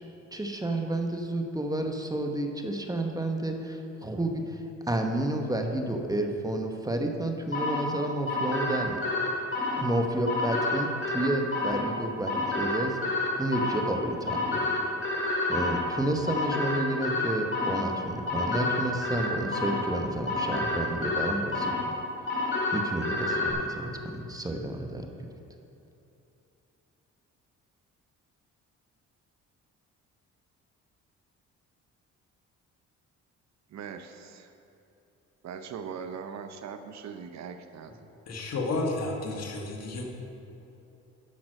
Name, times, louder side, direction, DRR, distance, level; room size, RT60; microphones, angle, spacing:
voice 1, 0.3-9.0 9.8-14.6 15.5-21.8 22.7-25.3, right 1 dB, 10° right, 3 dB, 1.1 m, -31 dB
sound 1, 7.5-23.5, left 2 dB, 40° left, 2.2 m, -30 dB
voice 2, 33.7-34.5 35.4-38.1, right 6 dB, 65° right, 8 dB, 0.8 m, -40 dB
voice 3, 38.3-40.0, left 2 dB, 55° left, 1 dB, 1.8 m, -31 dB
10.5 x 6.0 x 6.5 m, 2.9 s
cardioid pair, 90°, 30 cm